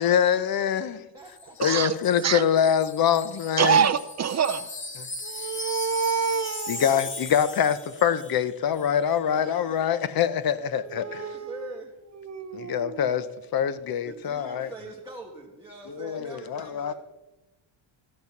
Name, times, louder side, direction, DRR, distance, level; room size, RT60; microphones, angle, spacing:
voice 1, 0.0-1.1 1.6-3.9 5.0-5.1 6.7-11.2 12.5-14.7 15.9-16.9, left 8 dB, 50° left, 0.8 m, -25 dB
voice 2, 0.7-1.6 9.1-9.9 11.0-12.0 14.0-16.9, right 1 dB, 5° right, 1.8 m, -43 dB
Wind chime, 1.2-8.5 8.7-8.9, left 3 dB, 25° left, 1.1 m, -38 dB
voice 3, 1.6-2.4 3.6-4.7 5.2-7.0 10.9-11.8 12.2-13.1, right 7 dB, 35° right, 0.4 m, -27 dB
14.0 x 8.4 x 5.9 m
cardioid pair, 140°, 48 cm